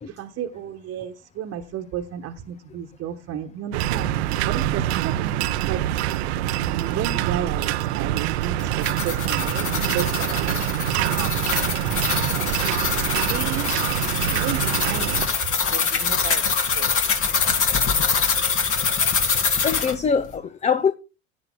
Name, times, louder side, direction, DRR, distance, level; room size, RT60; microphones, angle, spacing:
voice 1, 0.2-4.1 4.5-5.3 5.7-6.0 6.5-9.7 9.9-10.6 11.0-12.5 13.1-13.7 14.3-15.2 15.7-16.4 16.8-16.9, right 9 dB, 45° right, 1.2 m, -33 dB
sound 1, 3.7-15.3, right 13 dB, 70° right, 0.7 m, -25 dB
sound 2, 8.6-20.0, left 5 dB, 40° left, 2.3 m, -24 dB
voice 2, 19.6-20.9, left 6 dB, 20° left, 0.6 m, -23 dB
17.0 x 9.5 x 2.2 m
hypercardioid pair, 80°, 33 cm